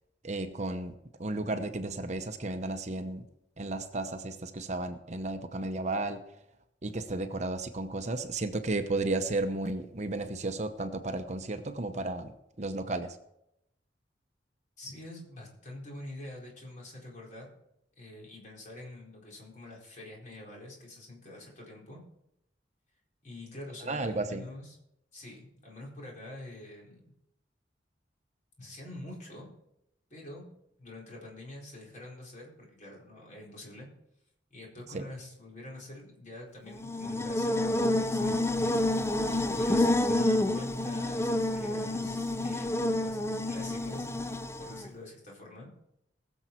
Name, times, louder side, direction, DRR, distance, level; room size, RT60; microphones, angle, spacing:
voice 1, 0.2-3.3 3.6-6.2 6.8-12.3 12.6-13.2 23.9-24.5 34.9-35.0, right 2 dB, 40° right, 7 dB, 0.8 m, -33 dB
voice 2, 14.8-17.5 18.0-22.0 23.2-24.8 25.1-27.1 28.6-29.5 30.1-30.5 30.8-33.9 34.5-44.2 44.6-45.7, left 1 dB, 45° left, -2 dB, 4.3 m, -46 dB
Buzz, 36.7-44.9, left 1 dB, 15° left, 0.6 m, -29 dB
20.0 x 7.2 x 4.5 m, 0.80 s
head